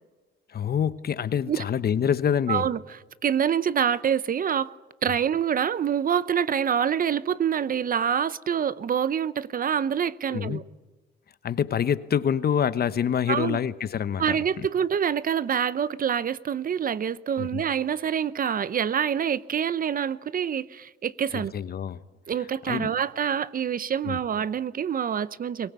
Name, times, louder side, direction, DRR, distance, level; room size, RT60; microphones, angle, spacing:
voice 1, 0.5-2.7 10.3-10.6 11.4-14.4 17.4-17.6 21.3-22.0 22.7-22.9 24.0-24.2, left 8 dB, 50° left, 1.0 m, -26 dB
voice 2, 2.5-2.8 3.2-4.7 5.0-10.6 13.3-13.6 14.2-21.5 22.3-25.7, right 8 dB, 45° right, 0.7 m, -26 dB
23.0 x 18.5 x 8.2 m
cardioid pair, 90°, 20 cm